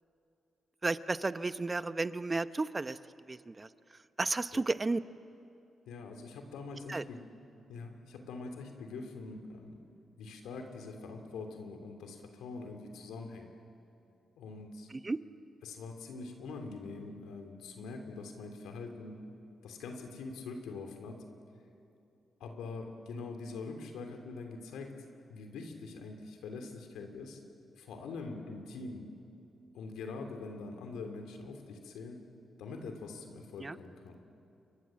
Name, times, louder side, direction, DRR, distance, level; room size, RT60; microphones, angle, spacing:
voice 1, 0.8-3.0 3.3-3.7 4.2-5.0 6.9-7.0 15.0-15.2 33.6-33.7, right 3 dB, 30° right, 13 dB, 0.8 m, -32 dB
voice 2, 5.9-7.2 7.7-9.8 10.2-13.5 14.4-14.9 15.6-19.1 19.6-21.3 22.4-27.4 27.8-29.1 29.7-32.3 32.6-34.2, left 3 dB, 85° left, 4 dB, 3.0 m, -44 dB
29.0 x 22.5 x 7.6 m, 2.7 s
supercardioid pair, 55°, 0 cm